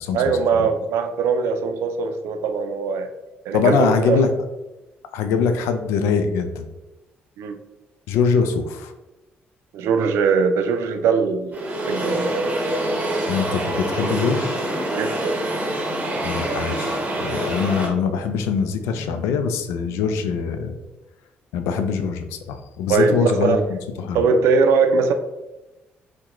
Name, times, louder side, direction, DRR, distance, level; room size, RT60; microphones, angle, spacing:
voice 1, 0.1-3.1 3.5-4.2 7.4-7.6 9.7-12.5 14.9-15.4 22.9-23.7 24.1-25.1, right 5 dB, 80° right, 7 dB, 0.4 m, -21 dB
voice 2, 3.5-4.3 5.1-6.7 8.1-8.9 13.3-14.6 16.2-20.8 21.5-24.2, left 6 dB, 90° left, 8 dB, 0.3 m, -23 dB
sound 1, 11.5-17.9, right 1 dB, 30° right, 0.9 m, -25 dB
2.8 x 2.2 x 3.6 m, 1.0 s
supercardioid pair, 70°, 5 cm